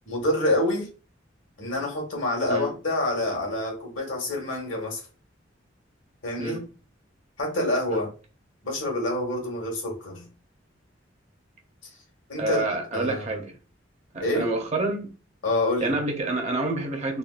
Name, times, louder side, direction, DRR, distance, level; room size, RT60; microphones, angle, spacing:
voice 1, 0.1-0.9 1.6-5.1 6.2-6.6 7.4-8.1 8.6-10.3 12.3-12.6 12.9-13.4 14.2-14.5 15.4-16.0, left 1 dB, 75° left, 1.4 m, -27 dB
voice 2, 12.4-13.5 14.1-15.1 15.8-17.2, right 2 dB, 35° right, 0.7 m, -28 dB
3.6 x 2.2 x 2.4 m
head